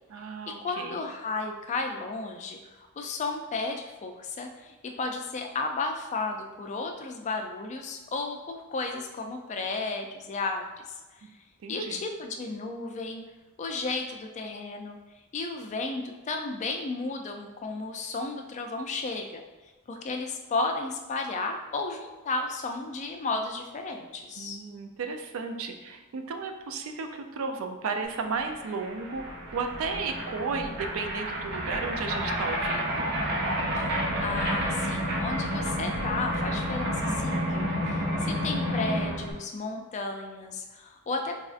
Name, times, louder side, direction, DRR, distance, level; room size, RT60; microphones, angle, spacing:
voice 1, 0.1-1.0 11.6-12.0 24.4-33.1, right 4 dB, 70° right, 5 dB, 0.4 m, -34 dB
voice 2, 0.6-10.6 11.2-11.3 11.7-13.2 13.6-15.0 15.3-19.4 19.9-24.6 33.8-33.9 34.2-41.4, left 3 dB, 35° left, 4 dB, 0.3 m, -33 dB
sound 1, 28.2-28.3 28.4-39.3, equal, 50° right, 0.7 m, -30 dB
4.1 x 2.5 x 2.4 m, 1.2 s
head